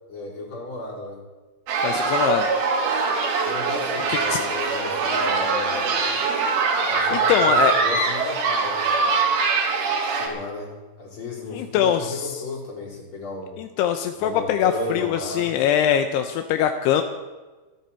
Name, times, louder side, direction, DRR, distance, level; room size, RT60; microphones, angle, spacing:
voice 1, 0.1-1.2 3.4-6.1 6.9-9.1 10.1-13.6 14.2-15.6, left 2 dB, 30° left, -5 dB, 5.0 m, -34 dB
sound 1, 1.7-10.3, right 4 dB, 85° right, 4.7 m, -23 dB
voice 2, 1.8-2.5 4.1-4.4 7.1-7.7 11.5-12.3 13.6-17.0, left 9 dB, 80° left, 7 dB, 2.5 m, -22 dB
26.5 x 9.6 x 4.5 m, 1.2 s
omnidirectional pair, 5.4 m